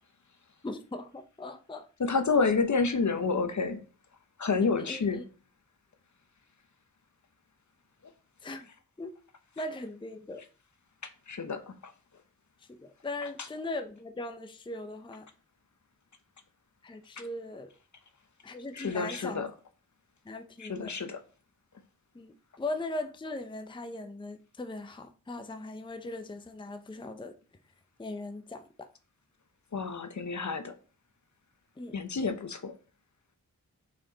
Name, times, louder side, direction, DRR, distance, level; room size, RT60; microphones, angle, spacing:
voice 1, 0.6-1.9 4.8-5.2 8.4-8.7 9.0-9.1 9.6-10.4 12.7-15.3 16.8-17.7 18.4-19.5 20.3-20.9 22.1-27.3 28.0-28.9 31.8-31.9, left 2 dB, 15° left, 0.5 m, -39 dB
voice 2, 2.0-3.8 4.4-5.2 11.3-11.9 17.2-17.3 18.7-19.5 20.6-21.2 29.7-30.7 31.9-32.7, left 4 dB, 55° left, 0.8 m, -29 dB
6.0 x 4.4 x 3.9 m
wide cardioid pair, 85°, 36 cm